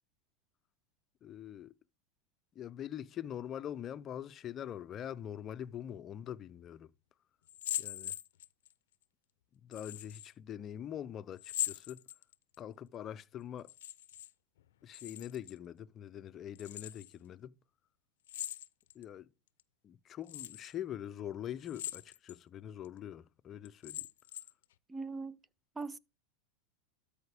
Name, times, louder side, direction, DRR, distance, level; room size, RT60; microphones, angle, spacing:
voice 1, 1.2-1.7 2.6-6.9 7.8-8.2 9.5-12.0 12.6-13.7 14.8-17.5 18.9-19.3 19.8-24.1, left 10 dB, 35° left, 0.5 m, -43 dB
sound 1, 7.5-8.7 9.7-10.3 11.4-12.6 13.6-14.3 14.6-15.6 16.5-17.1 18.3-19.0 19.6-19.7 20.3-20.7 21.6-22.4 22.8-22.9 23.6-24.6, left 13 dB, 80° left, 0.5 m, -41 dB
voice 2, 24.9-25.4 25.8-26.0, right 4 dB, 15° right, 0.5 m, -40 dB
13.0 x 5.0 x 3.5 m
supercardioid pair, 120°, 0 cm